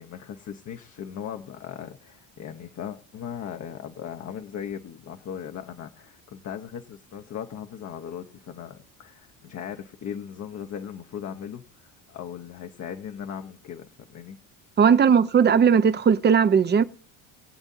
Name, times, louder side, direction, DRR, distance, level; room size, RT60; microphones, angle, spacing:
voice 1, 0.0-14.4, left 8 dB, 45° left, 1.1 m, -38 dB
voice 2, 14.8-16.8, right 7 dB, 25° right, 0.8 m, -18 dB
22.5 x 8.0 x 2.7 m
supercardioid pair, 105°, 38 cm